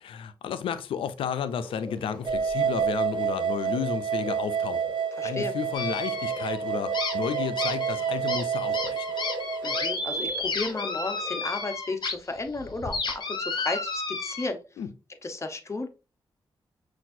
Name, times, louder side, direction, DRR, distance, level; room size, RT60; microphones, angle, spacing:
voice 1, 0.0-4.9 5.2-9.1 14.8-14.9, left 7 dB, 90° left, 0.4 m, -32 dB
sound 1, 1.4-11.6, left 1 dB, 10° left, 1.1 m, -43 dB
sound 2, 2.3-9.9, right 7 dB, 65° right, 0.6 m, -29 dB
voice 2, 5.2-5.5 9.6-14.6 15.2-15.9, left 3 dB, 35° left, 0.9 m, -33 dB
sound 3, 5.7-6.6 6.9-12.1 12.5-14.5, left 3 dB, 55° left, 1.1 m, -32 dB
5.8 x 2.5 x 2.6 m
cardioid pair, 60°, 9 cm